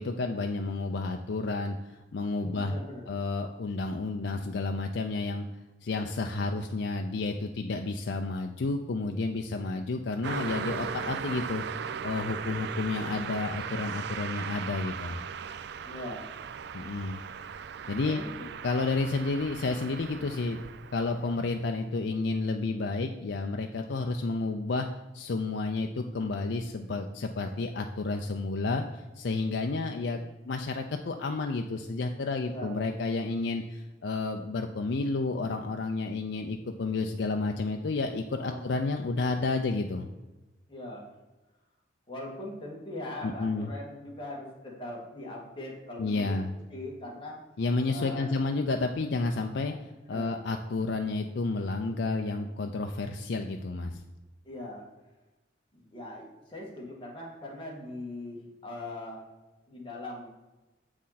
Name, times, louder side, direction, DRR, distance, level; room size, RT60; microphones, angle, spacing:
voice 1, 0.0-2.7 3.1-5.5 5.8-11.6 12.0-15.2 16.7-17.2 17.9-18.2 18.6-20.6 20.9-24.9 25.1-40.1 43.2-43.7 46.0-46.5 47.6-49.7 50.1-54.0, left 3 dB, 65° left, 4 dB, 0.5 m, -31 dB
voice 2, 2.4-3.1 15.8-16.2 18.0-18.5 32.5-32.7 38.4-38.6 40.7-41.1 42.1-46.4 46.7-47.4 47.9-48.3 50.1-50.4 54.4-54.9 55.7-59.2 59.7-60.3, left 1 dB, 30° left, -3 dB, 2.1 m, -40 dB
Car passing by, 10.2-21.7, right 7 dB, 60° right, 0.4 m, -38 dB
7.4 x 6.1 x 4.1 m, 1.1 s
head